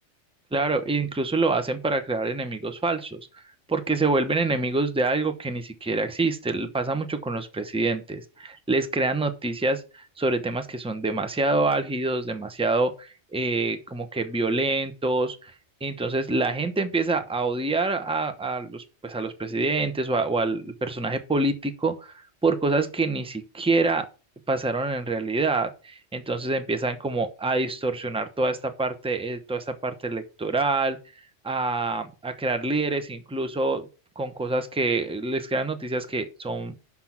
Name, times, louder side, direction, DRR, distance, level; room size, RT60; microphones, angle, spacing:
voice 1, 0.5-3.4 3.7-15.5 15.8-24.1 24.5-31.0 31.4-33.8 34.2-36.7, right 3 dB, 5° right, 9 dB, 0.7 m, -26 dB
5.9 x 5.8 x 5.9 m, 0.34 s
omnidirectional pair, 1.2 m